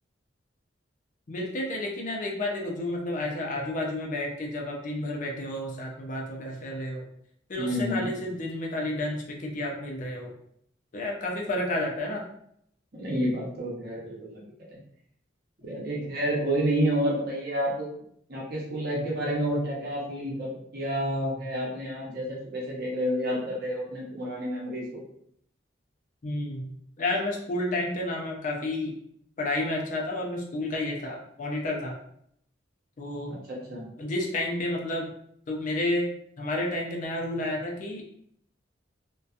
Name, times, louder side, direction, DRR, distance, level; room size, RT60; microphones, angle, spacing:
voice 1, 1.3-7.0 7.5-10.3 10.9-12.2 26.2-26.7 27.0-29.0 29.4-32.0 33.0-33.4 34.0-35.1 35.5-36.1 36.4-38.0, left 1 dB, 40° left, -1 dB, 0.4 m, -31 dB
voice 2, 7.6-8.1 12.9-14.4 15.6-17.9 18.3-25.0 33.5-33.9, equal, 50° right, -4 dB, 0.8 m, -29 dB
2.6 x 2.2 x 2.4 m, 0.69 s
head